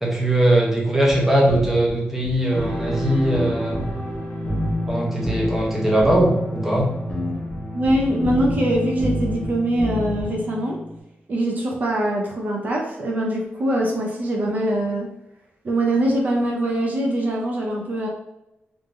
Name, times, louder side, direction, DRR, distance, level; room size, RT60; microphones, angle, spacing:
voice 1, 0.0-3.9 4.9-6.9, right 1 dB, 5° right, -2 dB, 0.7 m, -20 dB
sound 1, 1.1-1.2 1.5-1.9 2.2-4.2 4.5-4.9 5.2-5.7 6.0-6.3 6.8-6.9 7.1-9.5 9.8-10.3, left 1 dB, 20° left, 0.9 m, -29 dB
sound 2, 2.5-11.0, equal, 55° left, 1.0 m, -31 dB
voice 2, 7.7-10.8 11.3-15.1 15.6-18.1, right 1 dB, 45° right, -1 dB, 0.6 m, -23 dB
3.6 x 2.6 x 3.2 m, 0.89 s
wide cardioid pair, 155°, 4 cm